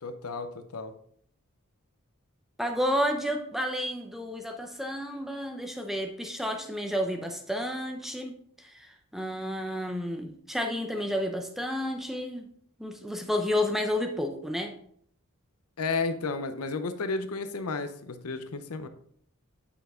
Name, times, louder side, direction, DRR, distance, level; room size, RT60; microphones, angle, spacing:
voice 1, 0.0-0.9 15.8-18.9, left 3 dB, 85° left, 10 dB, 0.7 m, -32 dB
voice 2, 2.6-12.5 12.8-14.7, equal, ahead, 4 dB, 0.7 m, -31 dB
8.1 x 5.6 x 3.6 m, 0.64 s
head